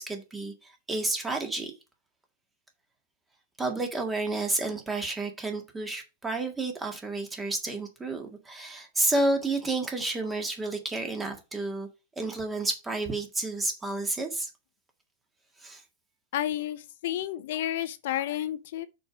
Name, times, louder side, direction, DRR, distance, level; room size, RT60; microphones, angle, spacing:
voice 1, 0.0-1.7 3.6-11.9 12.2-14.5 15.6-15.8, right 2 dB, 10° right, 1.8 m, -30 dB
voice 2, 16.3-18.9, left 12 dB, 65° left, 0.7 m, -31 dB
6.1 x 4.9 x 6.0 m
hypercardioid pair, 140°, 0 cm